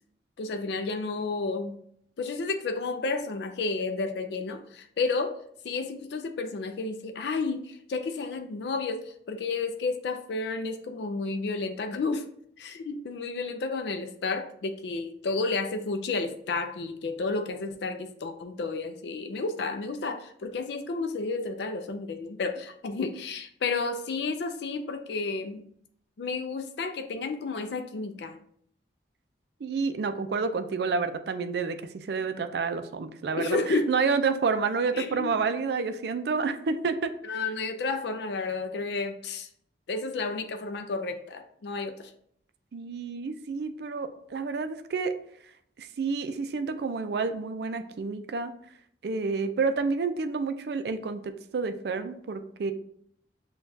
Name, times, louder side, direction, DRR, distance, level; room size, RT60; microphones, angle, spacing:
voice 1, 0.4-1.8 2.2-5.4 5.6-12.3 12.6-25.6 26.2-28.4 33.4-33.9 34.9-35.4 37.3-39.5 39.9-42.1, left 3 dB, 65° left, 6 dB, 0.4 m, -31 dB
voice 2, 29.6-37.4 42.7-45.1 45.8-48.5 49.0-52.7, right 4 dB, 60° right, 9 dB, 0.4 m, -29 dB
6.4 x 2.3 x 2.6 m, 0.65 s
head